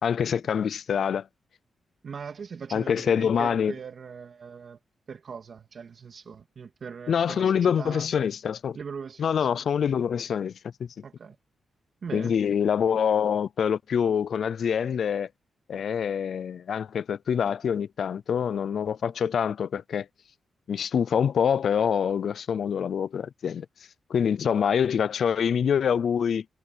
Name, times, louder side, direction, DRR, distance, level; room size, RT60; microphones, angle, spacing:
voice 1, 0.0-1.3 2.7-3.7 7.1-8.8 9.2-10.5 10.8-10.9 12.1-15.3 15.7-20.1 20.7-23.7 24.1-26.4, left 7 dB, 70° left, 0.5 m, -25 dB
voice 2, 2.0-4.8 5.1-8.1 8.7-9.5 11.0-11.4 12.0-12.3, right 6 dB, 55° right, 2.9 m, -40 dB
cardioid pair, 100°, 0 cm